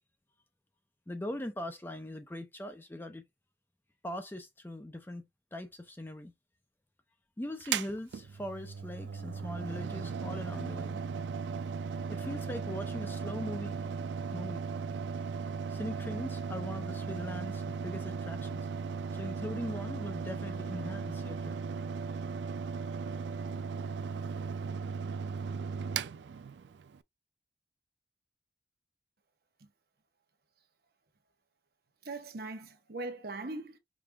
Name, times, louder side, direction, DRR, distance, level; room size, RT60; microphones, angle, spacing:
voice 1, 1.1-3.2 4.0-5.3 5.5-6.3 7.4-11.0 12.1-13.8 14.3-14.6 15.7-18.6 19.1-21.6, left 1 dB, 10° left, 0.5 m, -40 dB
Mechanical fan, 7.6-27.0, right 5 dB, 80° right, 0.4 m, -37 dB
voice 2, 32.0-33.8, right 2 dB, 60° right, 0.9 m, -40 dB
5.1 x 2.4 x 3.4 m
head